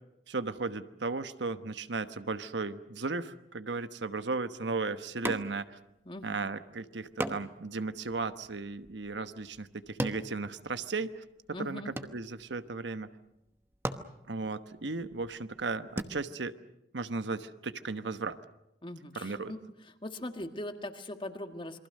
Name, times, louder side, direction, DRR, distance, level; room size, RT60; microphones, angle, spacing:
voice 1, 0.3-5.8 6.2-11.2 11.6-11.8 12.1-13.1 14.3-16.5 16.9-18.4 19.1-19.5, right 3 dB, 90° right, 11 dB, 1.1 m, -35 dB
sound 1, 5.2-5.9 6.1-6.2 7.2-11.1 11.4-12.7 13.3-13.4 13.7-16.0, right 1 dB, 15° right, 1.0 m, -39 dB
voice 2, 11.5-11.9 18.8-19.6 20.0-21.9, left 1 dB, 30° left, 7 dB, 1.6 m, -40 dB
28.0 x 23.0 x 6.6 m, 0.88 s
head